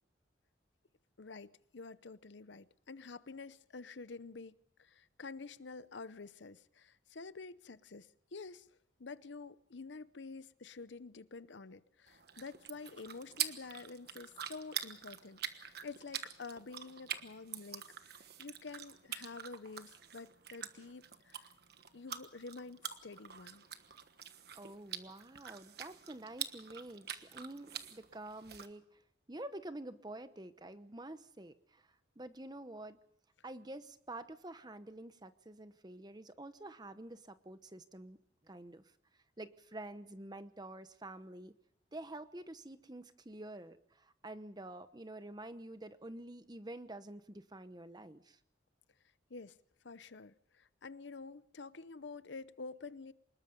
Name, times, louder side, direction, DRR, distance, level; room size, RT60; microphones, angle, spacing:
voice 1, 1.2-8.7 9.0-21.5 21.9-23.6 49.3-49.6 49.8-53.1, left 4 dB, 70° left, 0.8 m, -49 dB
sound 1, 12.1-28.7, right 9 dB, 55° right, 1.3 m, -45 dB
voice 2, 24.6-29.0 29.3-33.0 33.4-38.2 38.4-38.9 39.4-41.5 41.9-48.4, right 1 dB, 20° right, 1.0 m, -48 dB
25.0 x 21.0 x 5.3 m
head